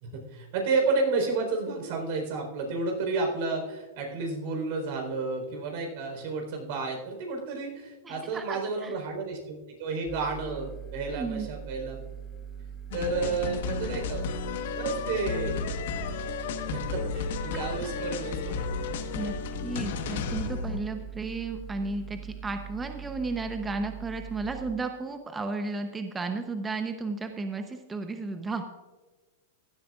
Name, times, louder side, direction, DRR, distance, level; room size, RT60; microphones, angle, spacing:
voice 1, 0.0-12.0 12.9-14.3 14.8-15.6 16.7-18.9, right 3 dB, 60° right, 3 dB, 4.1 m, -31 dB
voice 2, 8.0-8.9 11.1-11.5 19.1-19.3 19.6-28.6, right 3 dB, 15° right, 6 dB, 0.8 m, -33 dB
sound 1, 10.1-24.6, right 8 dB, 10° left, 1.5 m, -42 dB
sound 2, 12.9-20.8, left 6 dB, 70° left, 1.3 m, -33 dB
16.0 x 12.0 x 2.5 m, 1.3 s
hypercardioid pair, 125°, 0 cm